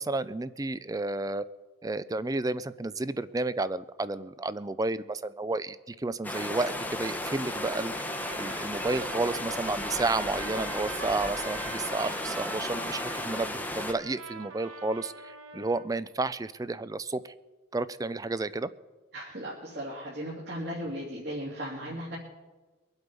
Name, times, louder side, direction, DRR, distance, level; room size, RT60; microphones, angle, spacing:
voice 1, 0.0-1.4 1.8-7.9 8.4-17.3 17.7-18.7, right 2 dB, 15° right, 16 dB, 0.4 m, -31 dB
sound 1, 6.2-13.9, left 1 dB, 10° left, 0.8 m, -34 dB
Trumpet, 8.0-15.9, right 4 dB, 80° right, 1.4 m, -43 dB
voice 2, 19.1-22.2, equal, 50° right, -5 dB, 2.9 m, -36 dB
23.5 x 8.0 x 5.3 m, 1.2 s
head